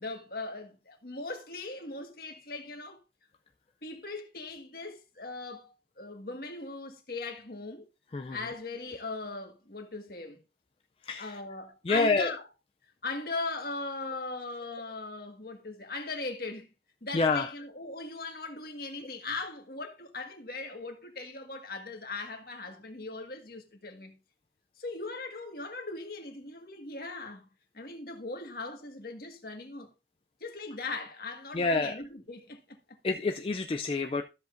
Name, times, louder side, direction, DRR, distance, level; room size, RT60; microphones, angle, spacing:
voice 1, 0.0-3.0 3.8-7.9 8.3-10.4 11.2-12.4 13.0-16.7 17.0-24.2 24.8-27.5 27.7-29.9 30.4-32.6, left 3 dB, 55° left, 1.7 m, -39 dB
voice 2, 11.9-12.3 17.1-17.5 31.5-32.0 33.0-34.2, left 3 dB, 30° left, 0.4 m, -27 dB
13.0 x 7.6 x 2.6 m
head